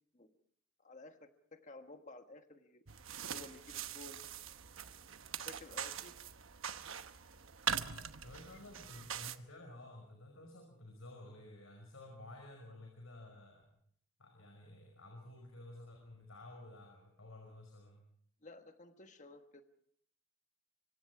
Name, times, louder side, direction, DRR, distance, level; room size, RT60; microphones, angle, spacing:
voice 1, 0.8-2.8 3.3-4.2 5.4-6.1 18.4-19.6, left 2 dB, 35° left, 7 dB, 1.3 m, -54 dB
sound 1, 2.9-9.4, right 8 dB, 75° right, 1.1 m, -42 dB
voice 2, 8.2-13.6 14.2-18.0, left 1 dB, 80° left, 2 dB, 5.4 m, -53 dB
25.0 x 24.5 x 4.9 m, 0.65 s
head